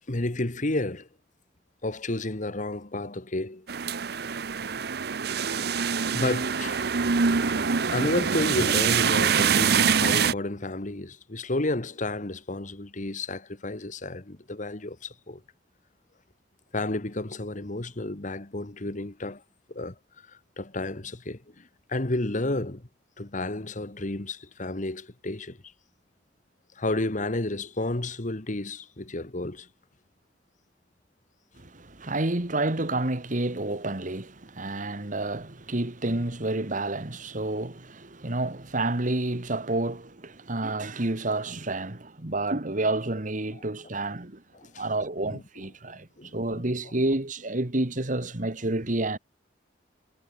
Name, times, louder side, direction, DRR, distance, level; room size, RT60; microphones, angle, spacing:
voice 1, 0.1-1.1 1.8-3.7 5.5-5.7 6.1-6.8 7.9-15.4 16.7-19.4 19.7-20.0 20.6-22.9 23.2-25.6 26.8-29.7 44.5-44.8 45.2-45.4 46.2-46.6, left 2 dB, 45° left, 1.7 m, -31 dB
sound 1, 3.7-10.3, right 6 dB, 65° right, 0.8 m, -24 dB
voice 2, 31.6-44.4 44.8-46.1 46.3-49.2, right 2 dB, 50° right, 2.0 m, -29 dB
head